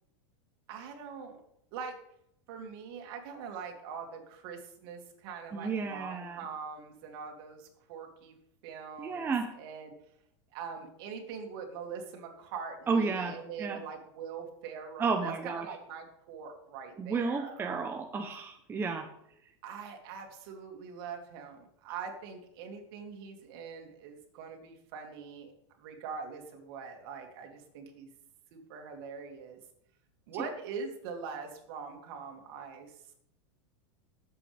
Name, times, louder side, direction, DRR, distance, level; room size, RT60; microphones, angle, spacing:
voice 1, 0.7-1.4 1.7-1.9 2.5-8.4 8.6-9.9 10.5-17.9 19.6-25.5 25.8-28.1 28.5-29.6 30.3-33.1, right 6 dB, 55° right, 3 dB, 2.6 m, -43 dB
voice 2, 5.5-6.4 9.0-9.5 12.9-13.8 15.0-15.7 17.0-19.1, right 4 dB, 15° right, 3 dB, 0.8 m, -32 dB
20.5 x 7.9 x 3.5 m, 0.78 s
supercardioid pair, 145°, 15 cm